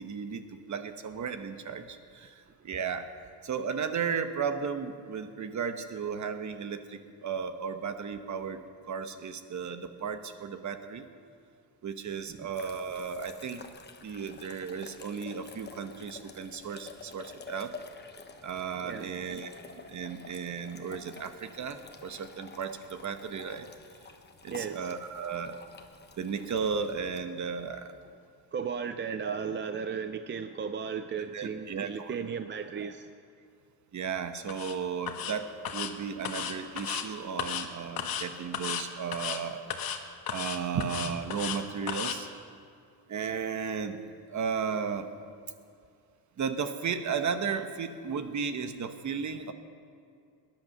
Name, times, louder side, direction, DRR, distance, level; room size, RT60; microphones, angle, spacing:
voice 1, 0.0-3.1 3.4-11.1 11.8-13.6 14.0-17.7 18.4-19.5 19.9-23.7 24.4-25.6 26.2-28.0 29.2-29.4 31.3-32.1 32.8-32.9 33.9-39.6 40.3-42.3 43.1-44.0 44.3-45.1 46.4-49.5, right 6 dB, 45° right, 9 dB, 1.1 m, -34 dB
sound 1, 12.3-27.2, left 4 dB, 25° left, 1.1 m, -50 dB
voice 2, 18.8-19.1 24.5-25.0 28.5-33.1, right 6 dB, 30° right, 9 dB, 0.5 m, -35 dB
sound 2, 34.5-34.7 35.1-35.3 35.6-35.9 36.2-37.0 37.4-37.7 38.0-38.3 38.5-38.8 39.1-39.4 39.7-40.0 40.3-41.6 41.9-42.2, left 8 dB, 60° left, 1.4 m, -34 dB
20.0 x 10.5 x 6.6 m, 2.4 s
cardioid pair, 125°, 40 cm